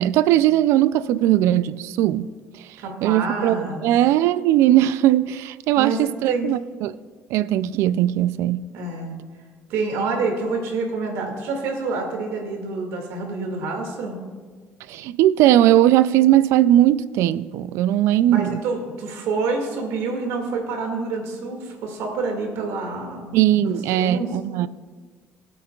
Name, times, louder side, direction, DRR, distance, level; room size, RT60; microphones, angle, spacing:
voice 1, 0.0-2.3 3.0-7.0 7.3-8.6 14.9-18.6 23.3-24.7, right 13 dB, 70° right, 0.3 m, -19 dB
voice 2, 2.8-3.8 5.8-6.0 6.2-6.5 8.7-9.2 9.7-14.2 18.3-23.4 23.6-24.3, right 4 dB, 85° right, 2.1 m, -27 dB
20.5 x 8.7 x 2.3 m
cardioid pair, 170°, 5 cm